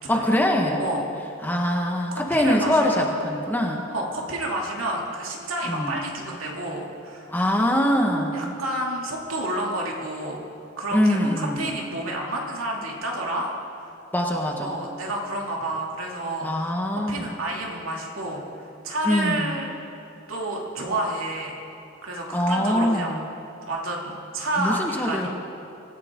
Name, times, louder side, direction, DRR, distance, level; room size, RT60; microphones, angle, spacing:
voice 1, 0.1-0.8 1.4-3.8 5.7-6.0 7.3-8.5 10.9-11.7 14.1-14.8 16.4-17.4 19.0-19.6 22.3-23.2 24.6-25.3, equal, 10° left, 1 dB, 1.4 m, -23 dB
voice 2, 0.8-1.1 2.3-3.1 3.9-7.3 8.3-10.4 10.8-13.5 14.6-16.7 17.1-19.7 20.3-21.6 22.0-23.2 23.7-25.3, right 1 dB, 85° right, -2 dB, 2.7 m, -30 dB
25.0 x 14.5 x 3.7 m, 2.8 s
head